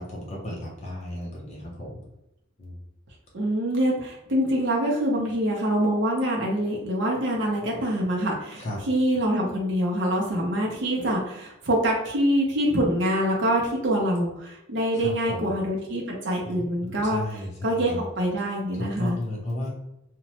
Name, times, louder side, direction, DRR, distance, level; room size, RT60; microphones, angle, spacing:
voice 1, 0.0-2.0 2.6-2.8 8.6-8.8 14.9-15.6 16.4-18.0 18.7-19.7, left 1 dB, 30° left, -3 dB, 0.5 m, -34 dB
voice 2, 3.3-19.2, equal, 55° right, -2 dB, 0.6 m, -25 dB
3.0 x 2.1 x 2.8 m, 0.86 s
head